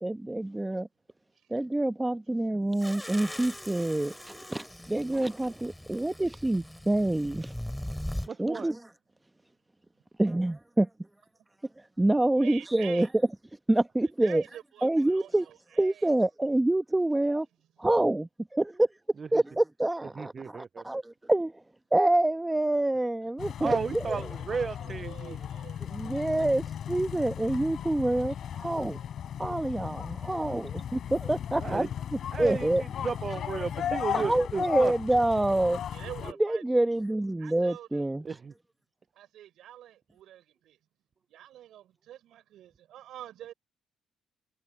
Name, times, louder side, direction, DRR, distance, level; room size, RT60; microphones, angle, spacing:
voice 1, 0.0-0.9 1.5-7.5 8.4-8.8 10.2-10.9 12.0-13.1 13.7-14.4 14.8-15.5 15.8-17.5 17.8-18.9 19.3-21.5 21.9-24.2 25.9-29.0 29.4-30.7 31.1-32.8 34.1-35.8 36.4-38.2, right 1 dB, 10° right, 1.2 m, -27 dB
sound 1, 2.8-8.3, left 1 dB, 5° left, 5.0 m, -40 dB
voice 2, 8.3-8.7 19.2-19.4 20.2-20.8 23.6-25.5 31.6-31.9 32.3-34.9 38.2-38.5, right 5 dB, 40° right, 0.7 m, -34 dB
voice 3, 12.3-13.1 14.2-16.1 24.1-25.9 26.4-26.5 35.9-36.9 37.4-38.0 39.1-40.8 41.3-43.5, right 12 dB, 80° right, 6.7 m, -47 dB
sound 2, 23.4-36.3, left 9 dB, 65° left, 4.9 m, -36 dB
cardioid pair, 90°, 0 cm